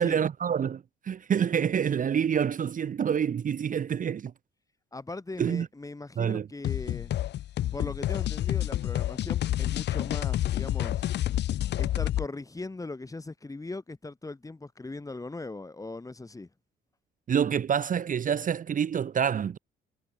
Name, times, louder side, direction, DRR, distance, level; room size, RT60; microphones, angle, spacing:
voice 1, 0.0-4.3 5.4-5.7 6.2-6.5 17.3-19.6, right 8 dB, 40° right, 0.7 m, -27 dB
voice 2, 4.9-7.1 7.7-11.1 11.8-16.5, left 2 dB, 15° left, 1.8 m, -39 dB
sound 1, 6.6-12.3, left 13 dB, 60° left, 0.5 m, -29 dB
cardioid pair, 90°, 20 cm